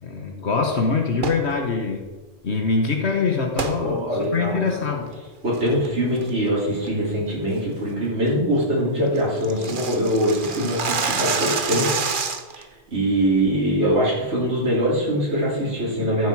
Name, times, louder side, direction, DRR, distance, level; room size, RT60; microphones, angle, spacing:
voice 1, 0.0-2.1 2.4-5.1, left 4 dB, 70° left, 3 dB, 1.6 m, -24 dB
sound 1, 1.1-1.5 3.6-3.8 4.3-4.4 4.9-5.1 5.5-5.9 6.2-6.5 6.8-6.9 7.3-7.6 7.9-8.0 8.3-8.4 8.6-8.7 9.0-12.6, right 5 dB, 50° right, 1.1 m, -27 dB
voice 2, 3.8-4.6 5.4-12.3 12.9-16.3, equal, 75° right, -7 dB, 3.7 m, -23 dB
14.0 x 8.0 x 4.8 m, 1.2 s
omnidirectional pair, 1.2 m